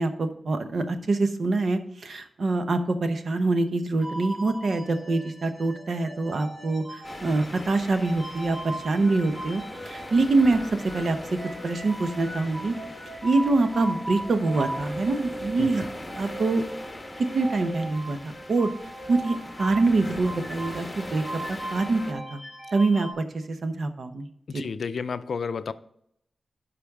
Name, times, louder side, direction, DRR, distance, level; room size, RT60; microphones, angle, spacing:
voice 1, 0.0-11.2 11.6-12.7 13.2-15.8 16.1-16.6 17.2-18.7 19.1-22.4 22.7-24.6, right 3 dB, 65° right, 8 dB, 0.8 m, -25 dB
sound 1, 4.0-23.1, right 1 dB, 30° right, 2.9 m, -38 dB
sound 2, 7.0-22.1, left 1 dB, 15° left, 1.3 m, -41 dB
voice 2, 24.5-25.7, left 5 dB, 80° left, 13 dB, 0.4 m, -31 dB
11.5 x 5.1 x 3.6 m, 0.72 s
wide cardioid pair, 115°, 0 cm